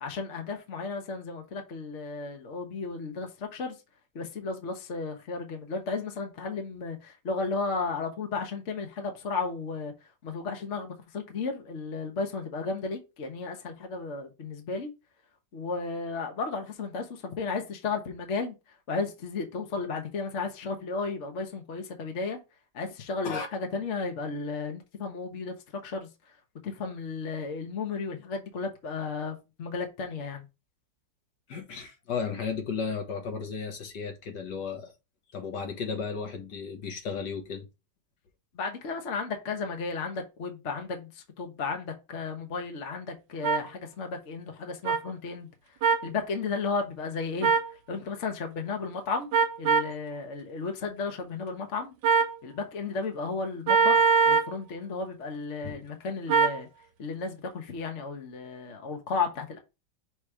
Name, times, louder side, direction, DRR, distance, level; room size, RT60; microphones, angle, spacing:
voice 1, 0.0-3.7 4.1-9.9 10.2-14.9 15.5-18.5 18.9-22.4 22.7-25.5 25.8-26.1 26.6-30.4 38.5-45.5 46.0-47.5 47.9-49.3 49.6-51.9 52.4-56.7 57.0-59.6, left 4 dB, 45° left, 1.4 m, -34 dB
voice 2, 31.5-34.9 35.3-37.7 55.6-55.8, left 5 dB, 70° left, 1.8 m, -34 dB
sound 1, 43.4-43.6 44.9-45.0 45.8-46.1 47.4-47.7 49.3-49.9 52.0-52.4 53.7-54.5 56.3-56.6, right 5 dB, 75° right, 1.2 m, -22 dB
6.2 x 3.1 x 4.9 m
omnidirectional pair, 1.9 m